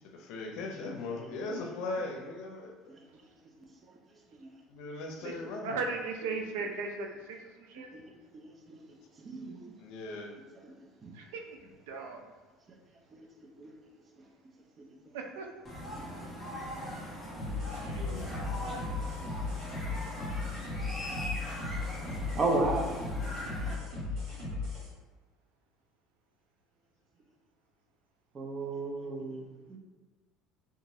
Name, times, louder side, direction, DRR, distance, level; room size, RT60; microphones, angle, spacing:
voice 1, 0.1-2.9 4.7-5.8 9.8-10.3, left 3 dB, 70° left, 2 dB, 0.6 m, -38 dB
voice 2, 5.6-7.9 11.1-11.6 11.9-12.2 15.1-15.5 17.8-18.8, right 4 dB, 90° right, 3 dB, 0.4 m, -38 dB
voice 3, 9.2-9.6 11.0-11.1 13.1-13.2 13.6-13.7 18.7-18.8 22.4-23.0 28.3-29.8, right 2 dB, 30° right, 1 dB, 0.6 m, -33 dB
sound 1, 15.6-23.7, equal, 10° left, 0.9 m, -40 dB
sound 2, 17.4-24.9, left 3 dB, 60° right, 1.4 m, -36 dB
2.9 x 2.5 x 2.7 m, 1.3 s
supercardioid pair, 110°, 0 cm